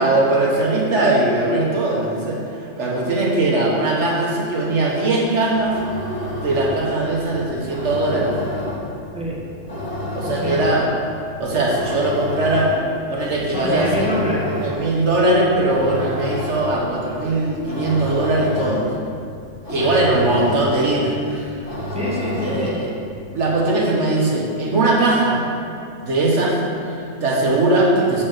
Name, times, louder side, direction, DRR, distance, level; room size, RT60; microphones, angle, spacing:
voice 1, 0.0-2.4 2.8-5.8 6.3-8.3 10.1-10.9 11.4-12.7 13.1-14.1 14.6-18.8 19.7-21.5 22.4-22.9 23.3-25.4 26.0-26.6 26.8-28.2, right 2 dB, 60° right, -3 dB, 1.6 m, -20 dB
sound 1, 5.6-23.0, left 1 dB, 40° left, 1.4 m, -30 dB
voice 2, 9.1-9.5 10.2-10.7 13.5-14.5 19.7-20.0 21.9-22.8, equal, 5° right, -5 dB, 1.2 m, -26 dB
7.2 x 4.5 x 6.5 m, 2.4 s
omnidirectional pair, 1.4 m